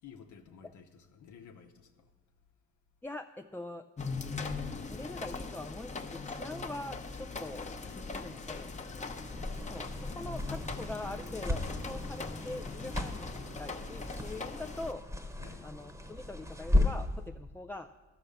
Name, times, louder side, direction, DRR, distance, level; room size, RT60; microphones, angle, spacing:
voice 1, 0.0-2.1 7.4-8.9 15.4-15.8, left 6 dB, 75° left, 3 dB, 0.9 m, -54 dB
voice 2, 3.0-3.8 4.8-7.7 8.0-8.7 9.7-13.3 13.6-15.0 15.6-17.9, left 2 dB, 5° left, 4 dB, 0.3 m, -43 dB
sound 1, 4.0-14.9, left 4 dB, 25° left, 0.8 m, -40 dB
sound 2, 9.1-17.2, left 1 dB, 10° right, 1.1 m, -35 dB
13.5 x 6.0 x 6.6 m, 1.3 s
cardioid pair, 90°, 30 cm